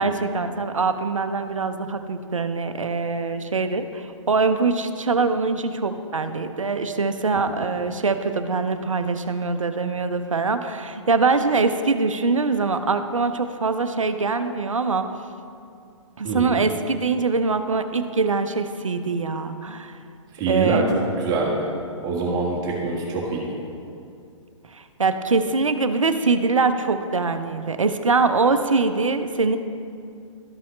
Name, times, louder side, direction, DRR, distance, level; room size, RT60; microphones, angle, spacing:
voice 1, 0.0-15.1 16.2-20.0 20.5-20.9 24.7-29.6, right 4 dB, 80° right, 9 dB, 0.6 m, -23 dB
voice 2, 16.2-16.6 20.3-20.8 21.2-21.7 22.0-23.5, right 3 dB, 25° right, -3 dB, 1.5 m, -25 dB
12.5 x 5.5 x 3.2 m, 2.5 s
figure-of-eight pair, 120°, 16 cm